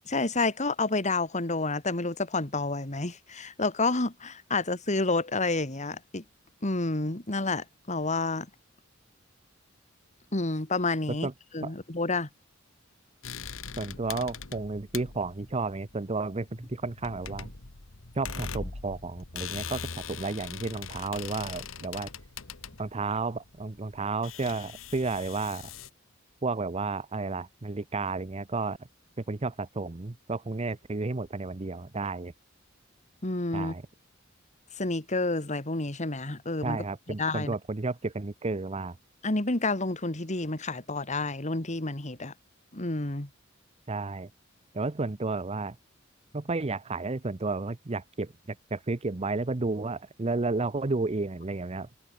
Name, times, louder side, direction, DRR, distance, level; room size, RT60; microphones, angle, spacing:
voice 1, 0.1-6.2 6.6-8.5 10.3-11.3 11.5-12.3 33.2-33.7 34.8-36.8 37.2-37.5 39.2-42.3 42.7-43.3, left 3 dB, 35° left, 2.3 m, -29 dB
sound 1, 13.2-25.9, left 6 dB, 85° left, 1.7 m, -41 dB
voice 2, 13.8-17.5 18.2-22.1 22.8-25.7 26.4-28.8 29.2-32.3 33.5-33.8 36.6-39.0 43.9-44.3 44.7-45.8 46.3-51.9, right 3 dB, 30° right, 0.7 m, -32 dB
head